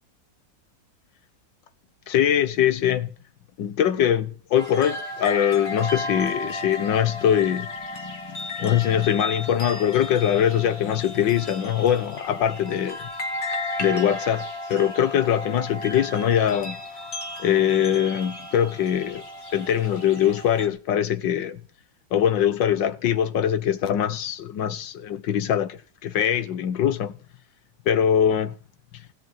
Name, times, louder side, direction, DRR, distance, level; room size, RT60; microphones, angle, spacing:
voice 1, 2.1-3.1 3.6-7.7 8.0-13.0 13.8-16.8 17.4-19.2 19.5-21.6 22.1-27.1 27.9-28.5, left 9 dB, 80° left, 1.8 m, -22 dB
sound 1, 4.6-20.7, left 2 dB, 35° left, 2.4 m, -34 dB
17.0 x 7.7 x 9.4 m
omnidirectional pair, 2.0 m